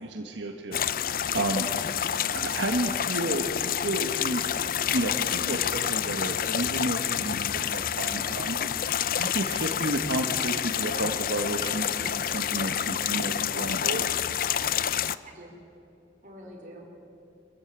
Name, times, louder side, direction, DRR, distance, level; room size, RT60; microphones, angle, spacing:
voice 1, 0.0-1.7 2.3-4.4 4.9-14.0, right 1 dB, 80° right, 3 dB, 1.5 m, -32 dB
sound 1, 0.7-15.2, left 9 dB, 50° left, 0.5 m, -28 dB
voice 2, 15.0-15.5 16.2-16.9, right 1 dB, 40° right, 0 dB, 4.8 m, -47 dB
26.0 x 14.0 x 8.9 m, 2.7 s
head